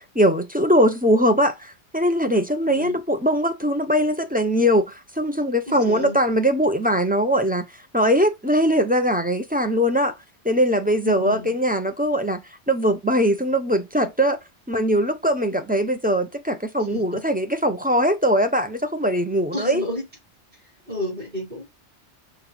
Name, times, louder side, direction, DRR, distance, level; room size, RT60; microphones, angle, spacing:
voice 1, 0.0-7.7 7.9-10.1 10.4-14.4 14.7-19.8, equal, 10° right, 0.7 m, -21 dB
voice 2, 5.7-6.2 11.0-11.5 16.9-17.2 19.5-20.0 20.9-21.6, left 1 dB, 40° right, 4.6 m, -31 dB
7.2 x 2.7 x 5.6 m
omnidirectional pair, 1.2 m